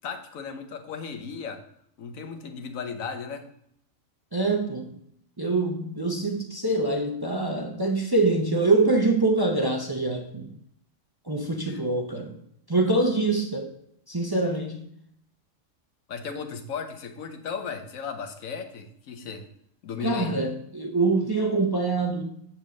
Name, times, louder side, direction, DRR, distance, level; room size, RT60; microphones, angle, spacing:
voice 1, 0.0-1.6 2.0-3.5 11.7-11.8 16.1-19.5 19.8-20.3, left 5 dB, 85° left, 7 dB, 1.3 m, -35 dB
voice 2, 4.3-4.9 5.4-10.5 11.3-12.3 12.7-13.7 14.1-14.8 20.0-22.2, right 2 dB, 25° right, 3 dB, 0.6 m, -24 dB
7.0 x 4.3 x 6.2 m, 0.71 s
omnidirectional pair, 1.4 m